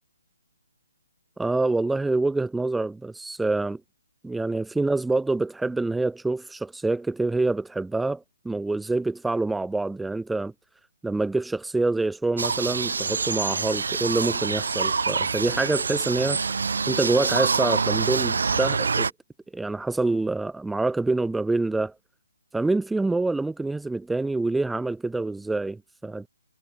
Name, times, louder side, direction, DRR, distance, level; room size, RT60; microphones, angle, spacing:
voice 1, 1.4-3.8 4.2-10.5 11.0-16.4 16.9-19.1 19.5-21.9 22.5-26.3, right 2 dB, 5° right, 1.1 m, -26 dB
sound 1, 12.4-19.1, right 5 dB, 70° right, 1.4 m, -26 dB
figure-of-eight pair, 140°, 0 cm